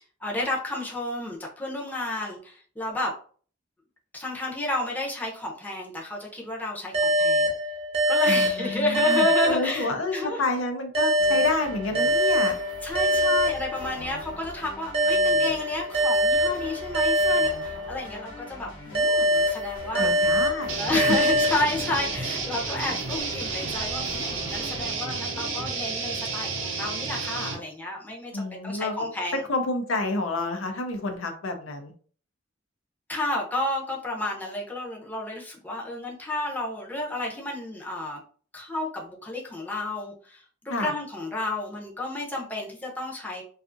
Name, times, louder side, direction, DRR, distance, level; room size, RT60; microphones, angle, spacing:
voice 1, 0.2-3.1 4.1-7.5 8.1-10.4 12.8-20.1 20.8-29.4 33.1-38.2 38.5-43.4, left 2 dB, 10° left, -2 dB, 0.6 m, -31 dB
sound 1, 6.9-10.3 10.9-14.3 14.9-18.3 18.9-22.3, equal, 35° right, 0.7 m, -24 dB
voice 2, 8.3-12.6 20.0-20.8 28.3-31.9 40.7-40.9, left 2 dB, 90° left, 5 dB, 0.6 m, -29 dB
sound 2, 11.2-24.9, left 1 dB, 70° left, 1.0 m, -42 dB
sound 3, 20.7-27.6, right 4 dB, 70° right, 0.7 m, -31 dB
2.5 x 2.4 x 2.5 m, 0.43 s
head